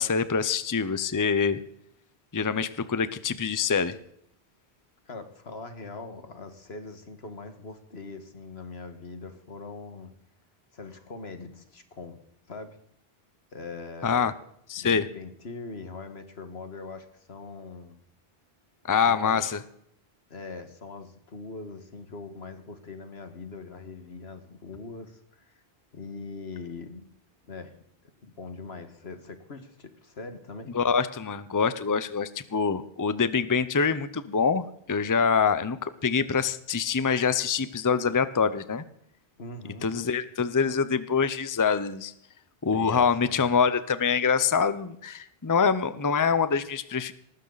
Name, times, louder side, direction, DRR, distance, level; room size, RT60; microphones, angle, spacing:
voice 1, 0.0-1.6 2.3-3.9 14.0-14.3 14.7-15.0 18.9-19.6 30.7-38.8 39.8-42.1 42.6-47.1, left 6 dB, 20° left, 14 dB, 0.7 m, -25 dB
voice 2, 5.1-10.1 10.7-12.2 12.5-12.8 13.5-14.3 14.8-18.0 19.0-19.4 20.3-25.6 25.9-27.1 27.5-27.7 28.2-30.8 39.4-39.9 42.7-43.4, left 3 dB, 80° left, 8 dB, 2.0 m, -41 dB
19.0 x 14.5 x 4.1 m, 0.71 s
omnidirectional pair, 1.0 m